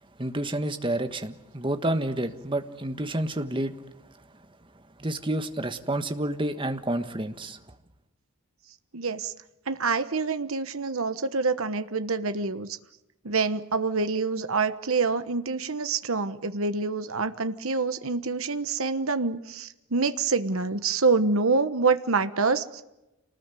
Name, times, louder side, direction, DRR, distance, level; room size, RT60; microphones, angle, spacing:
voice 1, 0.2-3.7 5.0-7.6, right 1 dB, 20° right, 1.4 m, -29 dB
voice 2, 8.9-9.3 9.7-12.8 13.2-22.8, right 4 dB, 70° right, 1.2 m, -26 dB
27.5 x 19.5 x 9.2 m
head